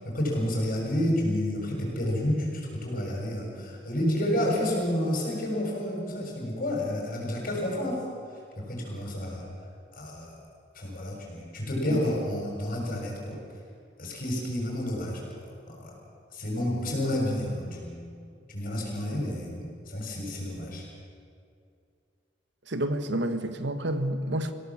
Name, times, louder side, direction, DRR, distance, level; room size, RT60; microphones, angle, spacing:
voice 1, 0.0-8.0 8.6-9.5 9.9-10.4 10.7-13.4 14.0-15.9 16.3-18.1 18.5-20.9, left 1 dB, 50° left, 6.9 m, -30 dB
voice 2, 22.7-24.5, right 1 dB, 70° right, 1.4 m, -29 dB
27.0 x 17.5 x 7.3 m
head